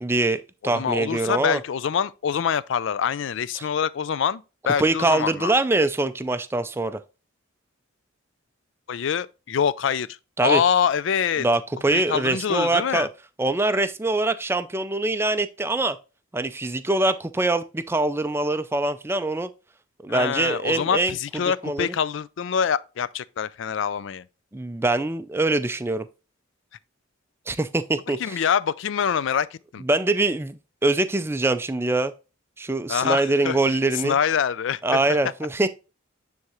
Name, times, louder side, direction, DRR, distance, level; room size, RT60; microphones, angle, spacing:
voice 1, 0.0-1.6 3.6-3.7 4.8-7.0 10.4-10.6 11.4-13.1 13.4-16.0 16.3-19.5 20.0-21.1 21.6-21.9 24.5-26.1 27.5-28.4 29.8-32.1 32.6-34.2 34.8-35.7, right 2 dB, 10° right, 0.4 m, -23 dB
voice 2, 0.6-5.5 8.9-10.1 10.4-11.5 11.9-13.1 20.1-24.2 28.2-29.8 32.9-33.6 34.0-35.0, left 7 dB, 60° left, 0.4 m, -25 dB
9.4 x 3.6 x 3.0 m
head